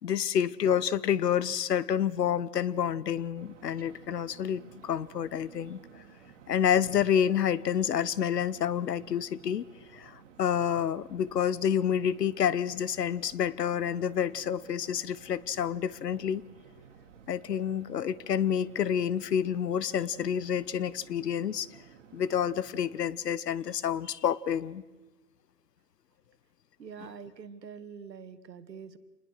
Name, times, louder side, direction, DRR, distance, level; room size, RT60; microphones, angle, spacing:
voice 1, 0.0-5.8 6.5-9.6 9.9-16.4 17.3-21.7 22.1-24.8, left 9 dB, 75° left, 20 dB, 1.2 m, -28 dB
sound 1, 3.3-23.1, right 8 dB, 45° right, 2.3 m, -55 dB
voice 2, 26.8-29.0, right 6 dB, 80° right, 12 dB, 2.0 m, -45 dB
27.5 x 20.5 x 6.6 m, 1.2 s
hypercardioid pair, 160°, 49 cm